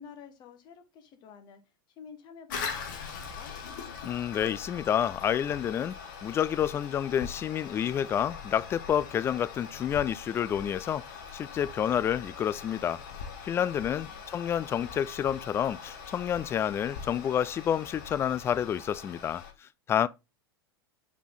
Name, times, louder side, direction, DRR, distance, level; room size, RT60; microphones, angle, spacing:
voice 1, 0.0-3.5 13.5-14.2, left 6 dB, 35° left, 1.3 m, -51 dB
Toilet flush, 2.5-19.5, left 6 dB, 55° left, 1.7 m, -42 dB
voice 2, 4.0-11.0 11.3-13.0 13.4-20.1, left 9 dB, 20° left, 0.3 m, -29 dB
5.6 x 4.3 x 3.9 m
figure-of-eight pair, 90°, 12 cm